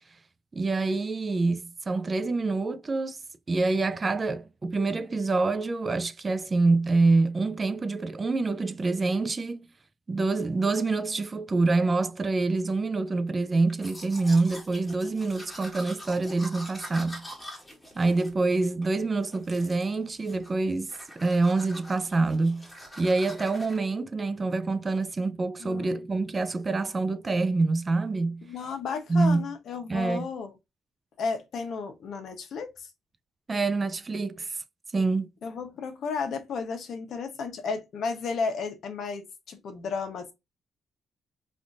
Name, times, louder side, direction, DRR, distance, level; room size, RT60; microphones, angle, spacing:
voice 1, 0.5-3.2 3.5-9.7 10.1-17.2 18.0-22.7 23.0-28.5 29.1-29.4 29.9-30.3 33.5-34.6 34.9-35.3, right 3 dB, 30° right, 0.4 m, -26 dB
Domestic sounds home sounds, 13.7-18.9 19.3-20.0 20.2-20.6 20.9-23.8, equal, 10° left, 1.4 m, -45 dB
voice 2, 25.6-26.0 28.4-30.5 31.2-32.9 35.4-40.3, left 5 dB, 65° left, 0.9 m, -33 dB
3.4 x 2.6 x 2.5 m
cardioid pair, 90°, 0 cm